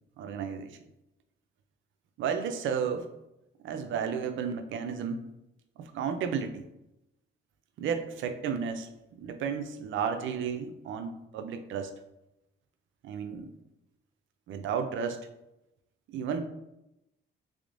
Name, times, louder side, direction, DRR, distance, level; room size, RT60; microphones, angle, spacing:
voice 1, 0.2-0.8 2.2-3.1 3.6-5.2 5.9-6.6 7.8-8.9 9.2-11.9 13.0-13.5 14.5-15.2 16.1-16.4, right 7 dB, 75° right, 7 dB, 0.5 m, -32 dB
3.5 x 3.3 x 2.5 m, 0.89 s
cardioid pair, 90°, 20 cm